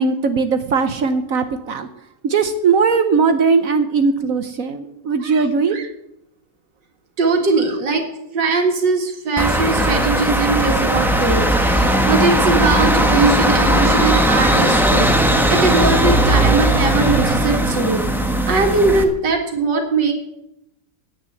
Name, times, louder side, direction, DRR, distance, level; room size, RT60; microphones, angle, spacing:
voice 1, 0.0-1.9 2.2-5.9, right 5 dB, 60° right, 9 dB, 1.1 m, -19 dB
voice 2, 7.2-8.1 8.3-18.1 18.5-20.1, right 3 dB, 80° right, 3 dB, 2.4 m, -20 dB
sound 1, 9.4-19.0, right 1 dB, ahead, 0.8 m, -17 dB
10.0 x 8.9 x 7.7 m, 0.82 s
omnidirectional pair, 1.9 m